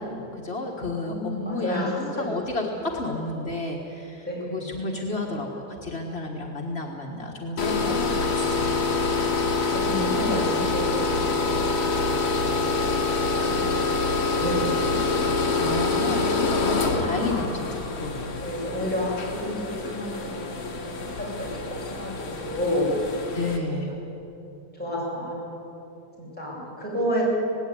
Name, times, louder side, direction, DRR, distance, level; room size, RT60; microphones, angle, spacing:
voice 1, 0.0-9.0 15.6-18.5 23.3-23.9, left 2 dB, 40° left, 0 dB, 0.9 m, -31 dB
voice 2, 1.0-2.3 4.2-4.8 7.8-7.9 9.7-15.5 16.1-16.4 16.7-17.1 18.4-21.6 21.9-22.9 24.8-25.5 26.2-27.2, equal, 5° left, -6 dB, 6.9 m, -31 dB
sound 1, 7.6-23.6, left 3 dB, 60° left, 3.3 m, -26 dB
18.5 x 17.5 x 9.8 m, 3.0 s
omnidirectional pair, 3.7 m